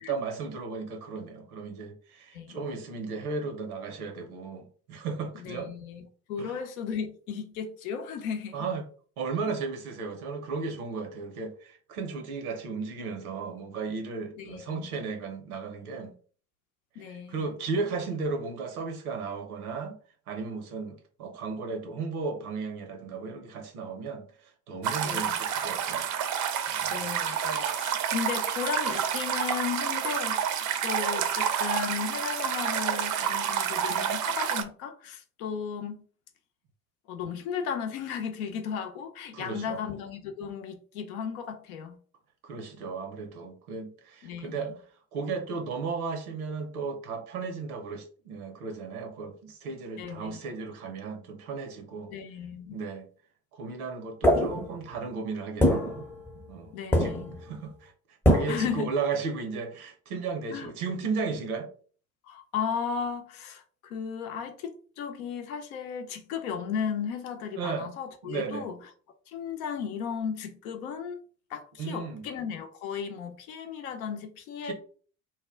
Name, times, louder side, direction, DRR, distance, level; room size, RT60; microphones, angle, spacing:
voice 1, 0.0-5.7 6.4-6.6 8.5-8.8 9.2-16.2 17.0-20.0 20.3-26.1 26.7-27.1 39.3-39.9 42.4-44.7 45.1-52.1 52.7-53.1 53.5-56.0 56.4-56.7 57.0-57.2 57.4-57.9 58.3-61.7 67.6-67.9 68.2-68.7 71.8-72.2 74.6-74.7, right 4 dB, 80° right, 0.7 m, -35 dB
voice 2, 5.3-6.0 6.3-8.7 14.4-14.9 17.0-17.5 25.0-25.3 26.9-36.0 37.1-42.0 44.2-44.8 50.0-50.4 52.1-52.8 56.7-57.4 58.5-58.9 60.5-60.7 62.2-68.8 69.3-71.2 71.5-74.7, left 7 dB, 75° left, 0.6 m, -35 dB
sound 1, 24.8-34.6, right 8 dB, 45° right, 0.5 m, -29 dB
sound 2, 54.2-55.0 55.6-56.6 56.9-57.5 58.2-58.7, equal, 5° left, 0.6 m, -24 dB
2.2 x 2.1 x 3.4 m
figure-of-eight pair, 55°, 43 cm